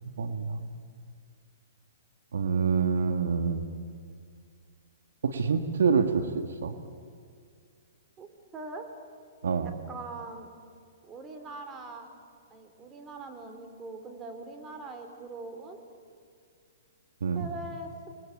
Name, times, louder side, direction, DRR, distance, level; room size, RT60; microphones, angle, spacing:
voice 1, 0.2-0.7 2.3-3.7 5.2-6.8 9.4-9.7 17.2-17.5, right 5 dB, 75° right, 8 dB, 2.0 m, -27 dB
voice 2, 8.2-8.9 9.9-10.5 11.0-12.1 12.5-15.8 17.4-17.9, right 3 dB, 20° right, 5 dB, 4.1 m, -42 dB
29.0 x 21.5 x 8.7 m, 2.2 s
hypercardioid pair, 130°, 0 cm